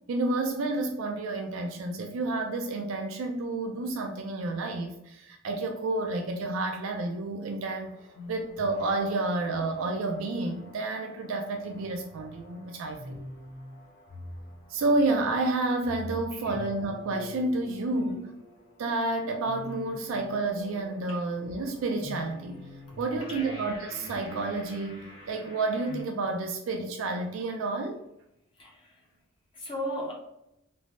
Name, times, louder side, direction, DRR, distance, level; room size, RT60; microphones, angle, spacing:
voice 1, 0.1-8.0 8.3-13.2 14.7-18.2 18.8-22.6 23.0-28.0, right 2 dB, 70° right, 4 dB, 0.3 m, -30 dB
sound 1, 7.7-26.0, left 1 dB, 50° left, 0.9 m, -46 dB
voice 2, 17.9-18.2 21.1-21.2 23.1-23.5 28.6-29.0 29.5-30.1, equal, 25° left, -2 dB, 0.5 m, -37 dB
3.2 x 2.0 x 2.5 m, 0.84 s
head